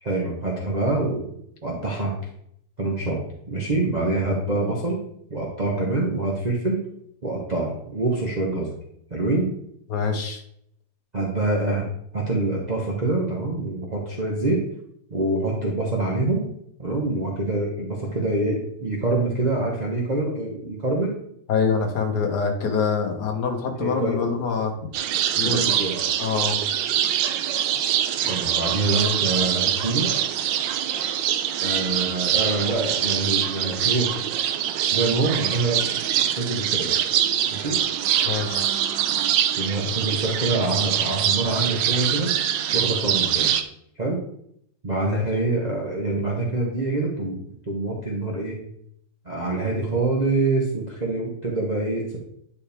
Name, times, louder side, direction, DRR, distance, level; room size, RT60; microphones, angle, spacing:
voice 1, 0.0-1.3 1.6-2.1 2.8-3.2 3.5-5.0 5.3-6.8 7.2-8.7 9.1-9.5 11.1-11.9 12.1-14.6 15.1-16.5 16.8-21.2 23.8-24.4 25.4-26.0 28.2-30.1 31.6-34.1 34.9-35.8 36.4-36.9 37.5-37.8 39.6-42.3 42.7-43.5 44.0-44.2 44.8-47.4 47.7-48.6 49.2-52.2, right 2 dB, 25° right, -3 dB, 1.1 m, -25 dB
voice 2, 9.9-10.4 21.5-24.7 25.4-25.6 26.2-26.6 38.3-38.7 45.1-45.2, left 5 dB, 65° left, 3 dB, 1.8 m, -25 dB
sound 1, 24.9-43.6, right 10 dB, 80° right, 1.3 m, -24 dB
10.0 x 4.7 x 3.5 m, 0.72 s
omnidirectional pair, 2.0 m